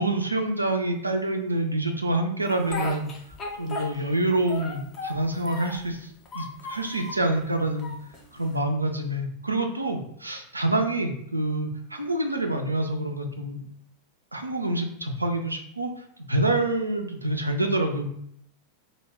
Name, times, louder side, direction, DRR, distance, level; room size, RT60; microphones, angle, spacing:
voice 1, 0.0-3.1 3.6-6.1 6.3-7.9 8.3-13.6 14.3-15.9 16.3-18.1, right 2 dB, 85° right, 4 dB, 0.3 m, -27 dB
Speech, 2.4-4.2 4.5-5.9 6.3-7.2 7.8-8.6, left 3 dB, 30° left, 0.5 m, -36 dB
2.1 x 2.0 x 3.3 m, 0.69 s
figure-of-eight pair, 90°, 0 cm